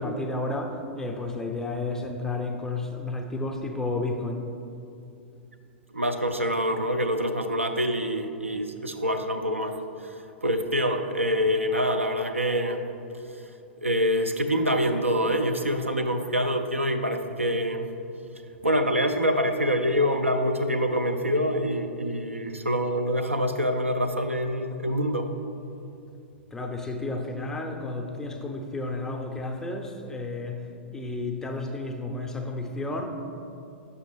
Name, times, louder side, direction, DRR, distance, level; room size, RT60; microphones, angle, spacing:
voice 1, 0.0-4.5 26.5-30.7 30.9-33.1, left 2 dB, 10° left, 3 dB, 0.5 m, -32 dB
voice 2, 5.9-9.7 10.0-10.2 10.4-12.9 13.8-17.9 18.6-25.3, equal, 85° right, 6 dB, 0.4 m, -25 dB
6.3 x 5.5 x 3.2 m, 2.7 s
figure-of-eight pair, 100°, 7 cm